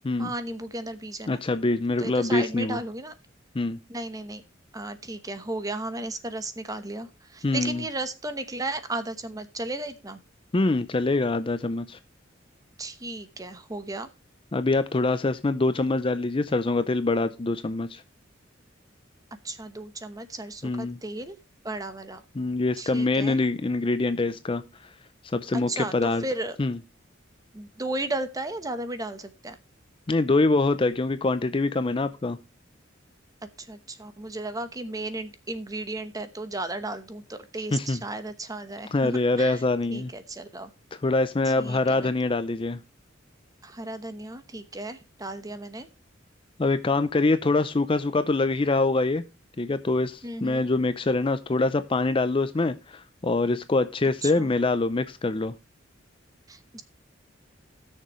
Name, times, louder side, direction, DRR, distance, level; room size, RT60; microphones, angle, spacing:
voice 1, 0.2-1.4 2.0-3.1 3.9-4.4 4.7-10.2 12.8-14.1 19.4-21.4 21.6-22.2 22.8-23.4 25.5-26.6 27.5-29.6 33.6-39.6 39.9-40.7 41.4-42.1 43.6-45.9 50.2-50.6 54.2-54.5 56.5-56.8, right 2 dB, 20° right, 1.0 m, -34 dB
voice 2, 1.3-2.8 3.5-3.8 7.4-7.8 10.5-12.0 14.5-18.0 20.6-21.0 22.4-24.6 25.2-26.2 26.6-26.7 30.1-32.4 37.7-38.0 38.9-40.1 41.0-42.8 46.6-49.2 49.6-55.5, left 2 dB, 25° left, 0.5 m, -24 dB
17.5 x 6.7 x 3.1 m
head